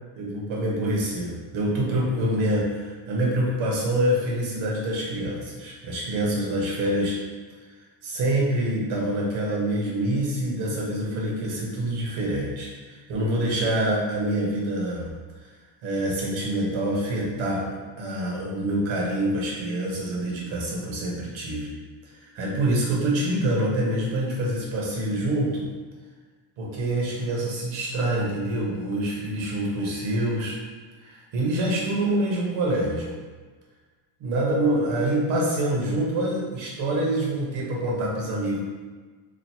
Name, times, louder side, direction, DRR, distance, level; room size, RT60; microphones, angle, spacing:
voice 1, 0.2-7.2 8.0-12.7 13.1-15.1 15.8-21.7 22.3-25.7 26.6-30.5 31.0-33.1 34.2-38.6, right 1 dB, 85° right, -4 dB, 1.2 m, -26 dB
3.1 x 2.5 x 4.3 m, 1.4 s
cardioid pair, 145°, 46 cm